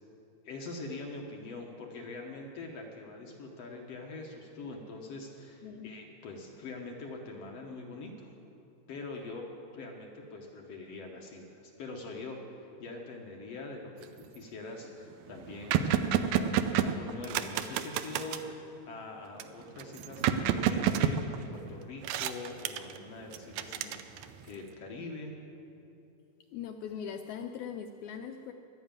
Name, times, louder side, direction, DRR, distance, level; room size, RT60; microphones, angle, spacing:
voice 1, 0.4-8.3 8.9-9.4 9.7-12.4 12.8-13.9 14.2-25.3, left 3 dB, 65° left, 1 dB, 1.8 m, -43 dB
voice 2, 5.6-6.0 26.5-28.5, left 7 dB, 80° left, 5 dB, 1.7 m, -40 dB
sound 1, 14.0-14.4 14.8-14.9 15.1-18.5 19.4-21.7 22.0-23.0 23.3-24.5, right 9 dB, 80° right, 1.7 m, -30 dB
12.0 x 10.5 x 8.9 m, 2.9 s
omnidirectional pair, 3.8 m